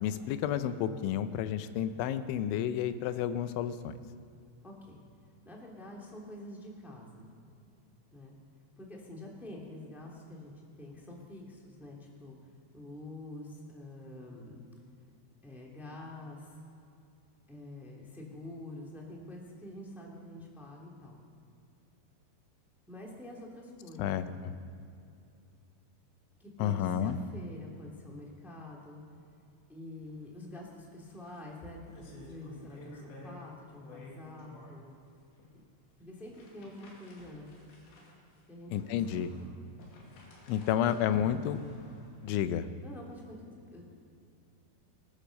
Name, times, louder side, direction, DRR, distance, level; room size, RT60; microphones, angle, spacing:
voice 1, 0.0-4.0 24.0-24.5 26.6-27.2 38.7-39.3 40.5-41.6 42.2-42.7, left 10 dB, 90° left, 11 dB, 3.1 m, -31 dB
voice 2, 4.6-5.0 5.4-7.3 8.1-8.3 8.8-12.4 12.7-14.5 15.4-16.6 17.5-21.2 22.9-24.6 26.4-29.0 29.7-35.0 36.0-37.6 38.5-38.8 39.2-39.6 42.8-43.9, left 1 dB, ahead, -2 dB, 1.1 m, -47 dB
sound 1, 30.0-30.2 30.5-30.6 31.0-33.5 33.7-34.8 35.4-35.5 36.2-42.3, left 1 dB, 75° left, 4.5 m, -51 dB
20.5 x 10.0 x 6.5 m, 2.6 s
omnidirectional pair, 5.3 m